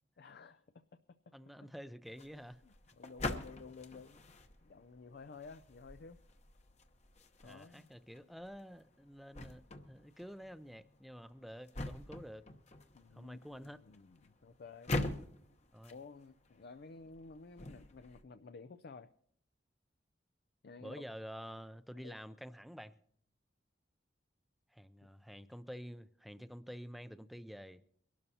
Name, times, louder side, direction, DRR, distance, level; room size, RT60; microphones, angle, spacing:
voice 1, 0.2-0.8 2.6-4.2 4.6-6.2 7.4-7.9 12.9-15.0 15.9-19.1 20.6-21.0 21.9-22.2, left 4 dB, 55° left, 0.4 m, -53 dB
voice 2, 1.3-2.6 7.4-12.5 13.1-13.8 15.7-15.9 20.8-23.0 24.7-27.8, equal, ahead, 0.4 m, -49 dB
sound 1, 2.1-18.2, left 2 dB, 40° left, 1.0 m, -45 dB
23.0 x 12.0 x 2.8 m
head